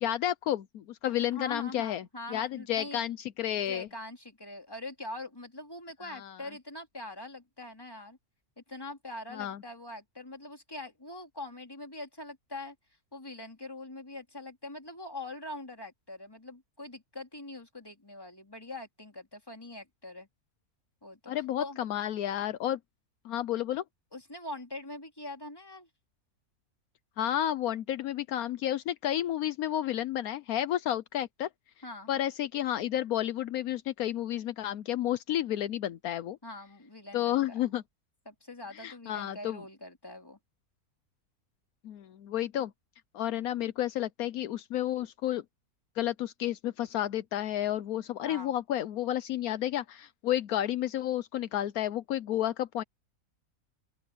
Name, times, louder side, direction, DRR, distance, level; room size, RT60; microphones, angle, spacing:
voice 1, 0.0-3.9 6.1-6.4 9.3-9.6 21.3-22.8 23.2-23.8 27.2-31.5 32.1-36.4 37.1-37.8 38.7-39.6 41.8-42.7 43.1-45.4 46.0-52.8, left 12 dB, 80° left, 1.1 m, -31 dB
voice 2, 1.1-3.0 3.7-8.2 8.6-12.7 13.1-20.3 21.0-21.8 24.1-25.9 31.8-32.1 36.4-37.6 38.2-40.4 48.2-48.5, left 2 dB, 15° left, 3.2 m, -43 dB
open air
omnidirectional pair, 1.6 m